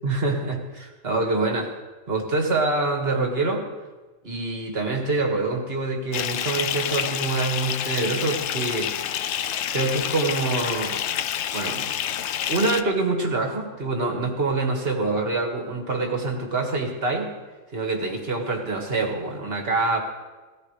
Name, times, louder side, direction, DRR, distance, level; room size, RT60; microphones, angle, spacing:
voice 1, 0.0-1.7 2.1-3.7 4.2-8.9 9.7-11.0 11.5-11.9 12.1-17.3 17.7-20.0, right 3 dB, 35° right, 1 dB, 2.1 m, -25 dB
Bathtub (filling or washing) / Fill (with liquid), 6.1-12.8, left 10 dB, 85° left, 0.6 m, -28 dB
18.0 x 15.0 x 3.3 m, 1.3 s
omnidirectional pair, 1.8 m